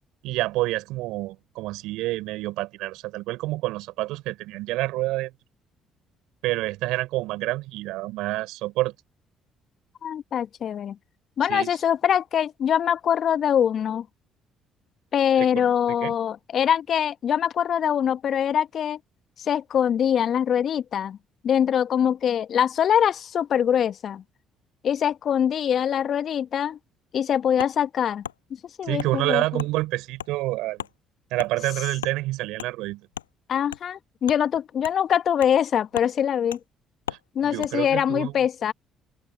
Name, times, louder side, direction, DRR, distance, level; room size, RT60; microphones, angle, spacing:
voice 1, 0.2-5.3 6.4-8.9 11.5-11.7 15.4-16.2 28.8-30.9 31.3-33.1 37.4-38.3, right 18 dB, 70° right, 3.6 m, -28 dB
voice 2, 10.0-11.0 11.4-14.1 15.1-19.0 19.4-21.2 21.4-24.2 24.8-26.8 27.1-28.2 28.8-29.6 33.5-36.6 37.3-38.7, left 9 dB, 55° left, 1.2 m, -23 dB
Wood, 27.6-27.7 28.2-28.4 29.0-29.1 29.6-29.7 30.2-30.3 30.8-30.9 31.4-31.5 32.0-32.2 32.6-32.7 33.1-33.3 33.7-33.8 34.2-34.4 34.8-35.0 35.4-35.6 35.9-36.1 36.5-36.6 37.1-37.2 37.6-37.7, left 10 dB, 85° left, 7.8 m, -35 dB
open air
hypercardioid pair, 50°, 0 cm